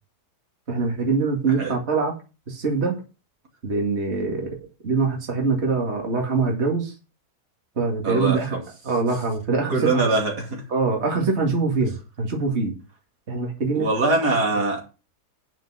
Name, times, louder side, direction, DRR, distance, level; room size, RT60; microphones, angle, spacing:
voice 1, 0.7-2.1 2.5-2.9 3.6-4.5 4.8-6.9 7.8-8.6 8.8-10.0 10.7-11.9 12.2-12.7 13.3-13.9, right 4 dB, 40° right, 2.4 m, -23 dB
voice 2, 8.0-8.6 9.7-10.6 13.7-14.9, right 3 dB, 75° right, 3.0 m, -23 dB
9.0 x 6.2 x 6.2 m
omnidirectional pair, 1.7 m